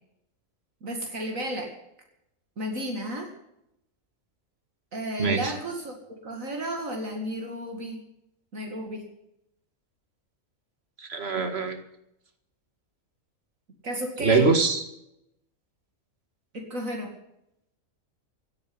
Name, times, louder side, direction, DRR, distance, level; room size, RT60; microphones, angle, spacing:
voice 1, 0.8-1.7 2.6-3.3 4.9-5.9 6.2-8.0 8.5-9.0 13.8-14.5 16.5-17.1, right 1 dB, 70° right, 2 dB, 2.6 m, -33 dB
voice 2, 5.2-5.5 11.0-11.8 14.2-14.8, right 4 dB, 45° right, 7 dB, 2.2 m, -23 dB
17.0 x 9.5 x 7.8 m, 0.82 s
omnidirectional pair, 1.5 m